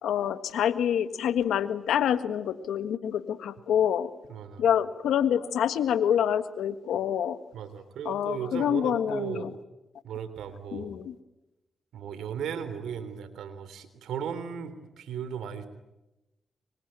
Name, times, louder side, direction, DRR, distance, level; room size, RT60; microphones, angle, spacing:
voice 1, 0.0-4.1 4.6-7.4 8.0-9.5 10.7-11.1, left 9 dB, 90° left, 12 dB, 1.6 m, -27 dB
voice 2, 4.3-4.6 7.5-9.5 10.0-10.9 11.9-15.7, right 8 dB, 90° right, 12 dB, 3.4 m, -36 dB
26.5 x 24.0 x 9.2 m, 0.97 s
cardioid pair, 60°, 0 cm